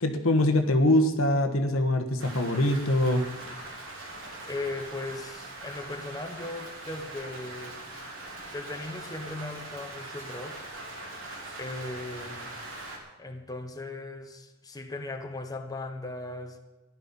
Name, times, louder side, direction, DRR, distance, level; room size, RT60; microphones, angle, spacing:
voice 1, 0.0-3.3, left 1 dB, 85° left, 7 dB, 1.4 m, -23 dB
Rain, 2.2-13.0, right 2 dB, 65° right, 3.3 m, -42 dB
voice 2, 4.4-7.8 8.5-10.7 11.6-12.7 13.2-16.6, left 2 dB, 20° left, 4 dB, 1.2 m, -38 dB
15.0 x 11.5 x 5.6 m, 1.1 s
head